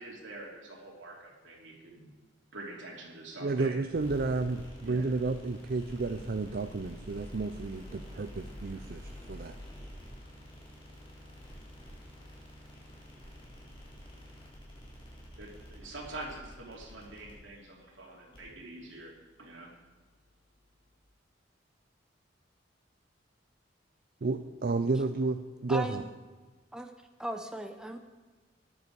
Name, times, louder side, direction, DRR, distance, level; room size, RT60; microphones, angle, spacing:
voice 1, 0.0-2.1 2.5-3.8 4.8-5.1 15.3-19.1 19.4-19.7, right 2 dB, 80° right, -2 dB, 2.9 m, -45 dB
voice 2, 3.4-9.6 24.2-26.0, right 3 dB, 55° right, 8 dB, 0.5 m, -32 dB
sound 1, 3.9-20.9, equal, 30° left, 4.1 m, -49 dB
voice 3, 25.7-26.1 26.7-26.9 27.2-28.0, right 1 dB, 5° right, 6 dB, 0.7 m, -37 dB
13.5 x 10.5 x 4.7 m, 1.3 s
head